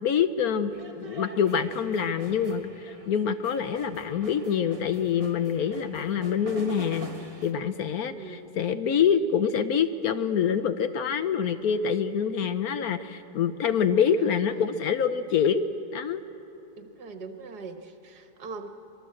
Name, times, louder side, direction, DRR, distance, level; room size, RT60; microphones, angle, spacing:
voice 1, 0.0-7.1 7.4-16.2, left 7 dB, 65° left, 11 dB, 1.1 m, -26 dB
sound 1, 0.7-7.5, right 3 dB, 20° right, 1.3 m, -45 dB
voice 2, 8.0-8.5 14.2-14.8 16.8-18.7, right 4 dB, 65° right, 6 dB, 1.9 m, -41 dB
24.0 x 22.0 x 7.7 m, 3.0 s
omnidirectional pair, 1.9 m